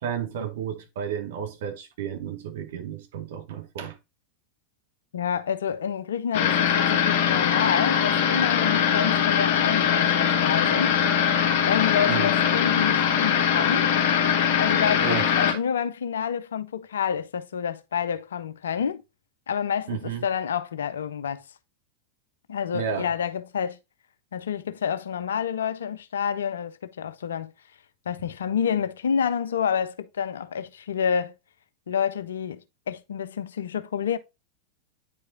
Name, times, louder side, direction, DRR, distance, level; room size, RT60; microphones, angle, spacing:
voice 1, 0.0-4.0 12.1-12.3 15.0-15.3 19.9-20.2 22.7-23.1, right 8 dB, 55° right, 1.2 m, -32 dB
voice 2, 5.1-13.9 14.6-15.0 15.4-19.0 19.5-21.4 22.5-23.8 24.3-27.5 28.1-31.3 31.9-32.6 32.9-34.2, left 7 dB, 65° left, 0.5 m, -28 dB
sound 1, 6.3-15.5, left 8 dB, 50° left, 1.2 m, -22 dB
9.0 x 4.8 x 2.5 m
figure-of-eight pair, 90°, 0 cm